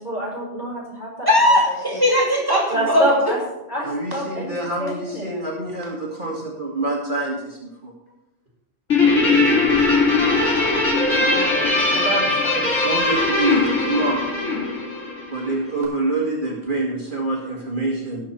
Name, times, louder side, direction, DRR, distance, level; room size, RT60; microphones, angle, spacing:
voice 1, 0.0-1.3 1.7-1.8 2.7-3.4 3.7-4.5 4.8-5.3 11.3-11.5 11.9-12.7, right 1 dB, 35° left, -4 dB, 4.5 m, -27 dB
voice 2, 1.2-3.0 10.9-11.6, left 1 dB, 15° right, -4 dB, 2.9 m, -19 dB
voice 3, 3.8-7.9 12.7-14.2 15.3-18.2, right 2 dB, 40° right, -2 dB, 1.9 m, -26 dB
Guitar, 8.9-15.6, left 3 dB, 70° left, 4.0 m, -20 dB
18.0 x 6.7 x 4.4 m, 0.95 s
omnidirectional pair, 1.3 m